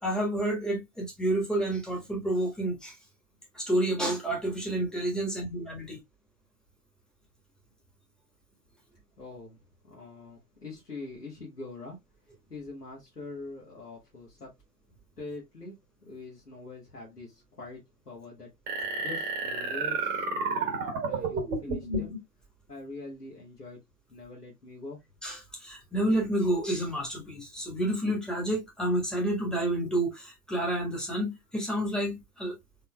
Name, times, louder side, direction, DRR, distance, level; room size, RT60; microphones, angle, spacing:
voice 1, 0.0-2.9 3.5-6.0 25.2-32.5, right 1 dB, ahead, 1.4 m, -29 dB
voice 2, 9.2-9.6 9.8-12.0 12.2-14.5 15.2-22.1 22.7-23.8 24.1-25.0, left 3 dB, 85° left, 1.7 m, -44 dB
sound 1, 18.7-22.2, right 3 dB, 20° right, 1.3 m, -31 dB
4.1 x 3.9 x 2.2 m
figure-of-eight pair, 105°, 47 cm